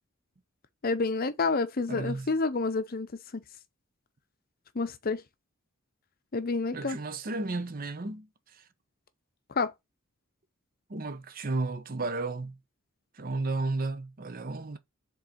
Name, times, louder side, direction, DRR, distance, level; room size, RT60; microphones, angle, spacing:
voice 1, 0.8-3.1 3.3-3.4 4.7-5.2 6.3-7.0 9.6-9.7, left 3 dB, 45° left, 0.7 m, -29 dB
voice 2, 1.9-2.3 6.7-8.6 10.9-12.6 13.1-14.8, right 3 dB, 45° right, 0.7 m, -33 dB
5.1 x 3.8 x 5.1 m
head